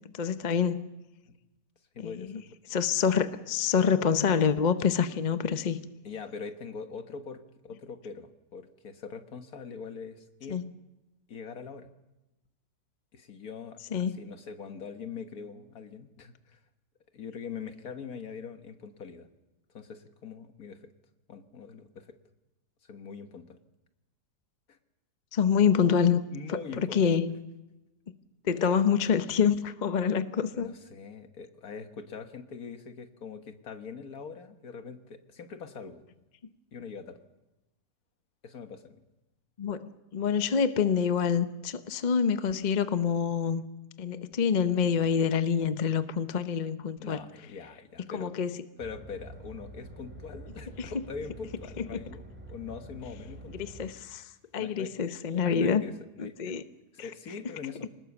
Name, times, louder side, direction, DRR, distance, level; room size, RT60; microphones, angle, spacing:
voice 1, 0.1-0.8 2.0-2.4 2.7-5.8 10.5-10.7 13.9-14.2 25.3-26.2 26.5-27.3 28.4-30.7 39.6-43.7 44.0-47.2 48.1-48.6 50.8-50.9 51.8-52.0 53.5-55.8 56.2-56.6, left 7 dB, 40° left, 10 dB, 0.7 m, -27 dB
voice 2, 1.9-2.4 6.0-10.6 11.3-11.9 13.1-16.6 17.1-19.3 19.7-20.9 21.3-22.2 22.8-23.6 24.7-24.8 26.3-27.2 30.5-36.0 36.7-37.2 38.4-39.0 47.0-48.3 48.8-53.7 54.5-54.9 55.4-56.6 56.9-57.9, left 5 dB, 60° left, 7 dB, 1.8 m, -42 dB
sound 1, 48.8-53.9, right 1 dB, 5° right, 4.8 m, -46 dB
24.5 x 19.5 x 7.1 m, 1.0 s
omnidirectional pair, 1.8 m